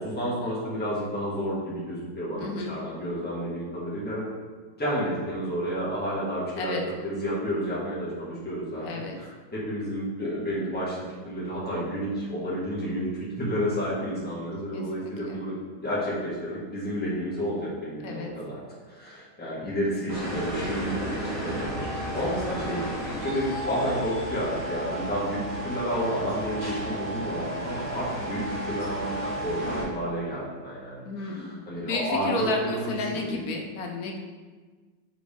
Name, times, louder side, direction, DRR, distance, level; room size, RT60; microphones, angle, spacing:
voice 1, 0.0-4.2 4.8-8.8 9.2-11.0 11.2-15.5 15.8-18.6 18.9-21.9 22.1-33.4, equal, 5° left, -8 dB, 1.6 m, -31 dB
voice 2, 2.4-2.7 6.5-6.8 8.8-9.2 14.7-15.4 18.0-18.3 31.0-34.2, left 3 dB, 60° left, 2 dB, 1.1 m, -32 dB
sound 1, 20.1-29.8, right 1 dB, 35° right, 1.8 m, -33 dB
6.3 x 4.6 x 3.5 m, 1.4 s
omnidirectional pair, 2.0 m